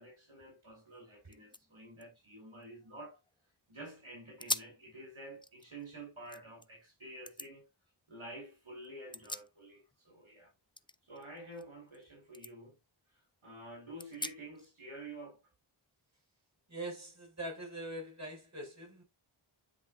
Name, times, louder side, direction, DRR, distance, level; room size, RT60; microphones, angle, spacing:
voice 1, 0.0-3.2 3.7-7.7 8.1-10.5 11.1-12.8 13.4-15.4, right 1 dB, 70° right, 4.9 m, -49 dB
sound 1, 0.9-1.0 1.3-3.5 3.9-4.0 4.4-4.8 5.3-6.7 7.3-7.5 8.8-10.0 10.2-12.1 12.3-12.5 13.0-13.1 14.0-14.7, left 2 dB, 10° left, 0.4 m, -43 dB
voice 2, 16.7-19.0, right 1 dB, 30° right, 5.7 m, -43 dB
9.8 x 6.2 x 2.4 m
wide cardioid pair, 45°, 50 cm